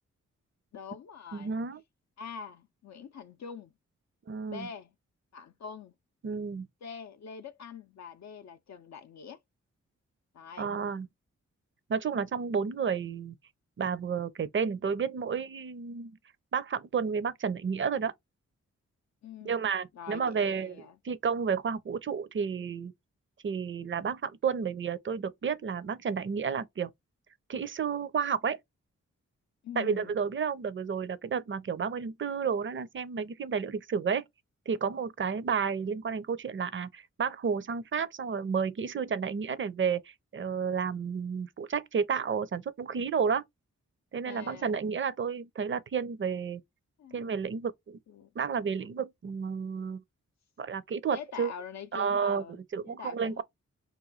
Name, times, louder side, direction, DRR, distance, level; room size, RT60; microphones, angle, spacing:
voice 1, 0.7-1.6 2.2-3.7 4.5-4.9 5.3-5.9 6.8-9.4 10.3-10.7 19.2-19.7 19.9-21.0 29.6-30.2 44.3-44.7 47.0-47.2 48.1-48.3 51.1-52.6 52.8-53.4, left 7 dB, 65° left, 0.5 m, -44 dB
voice 2, 1.3-1.8 4.3-4.7 6.2-6.7 10.6-11.1 11.9-13.3 13.8-16.2 16.5-18.1 19.4-22.9 23.4-26.9 27.5-28.6 29.8-34.2 34.7-43.4 44.1-46.6 47.1-48.0 48.4-50.0 50.6-51.5 51.9-53.4, right 6 dB, 40° right, 0.5 m, -31 dB
3.0 x 2.2 x 3.9 m
cardioid pair, 50°, 30 cm